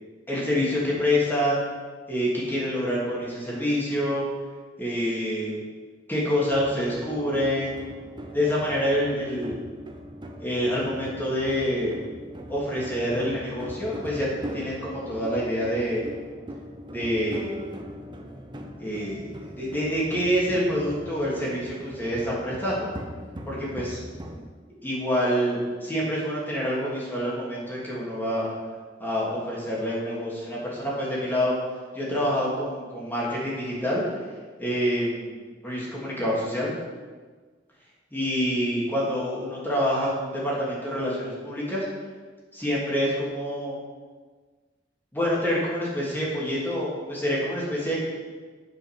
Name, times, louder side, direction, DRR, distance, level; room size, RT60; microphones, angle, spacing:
voice 1, 0.3-1.6 2.1-4.3 4.8-5.6 6.1-7.8 8.3-9.6 10.4-12.0 12.5-16.0 16.9-17.6 18.8-22.9 23.5-24.0 24.8-28.5 29.0-31.5 31.9-34.0 34.6-36.7 38.1-41.9 42.5-43.8 45.1-48.0, equal, 10° left, -6 dB, 2.6 m, -27 dB
sound 1, 6.5-24.5, equal, 25° right, 0.7 m, -40 dB
7.9 x 5.8 x 5.8 m, 1.4 s
head